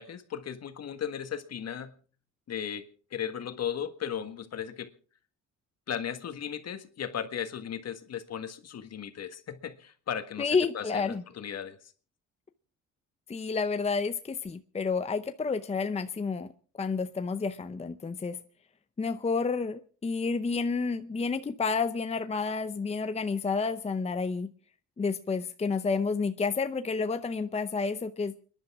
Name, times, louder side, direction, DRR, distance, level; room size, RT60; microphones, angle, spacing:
voice 1, 0.0-2.0 2.5-2.9 3.1-4.9 5.9-11.9, left 8 dB, 55° left, 9 dB, 1.6 m, -36 dB
voice 2, 10.4-11.2 13.3-16.5 16.8-18.4 19.0-24.5 25.0-28.3, left 4 dB, 20° left, 10 dB, 0.7 m, -30 dB
29.5 x 11.0 x 3.6 m, 0.42 s
cardioid pair, 90°, 30 cm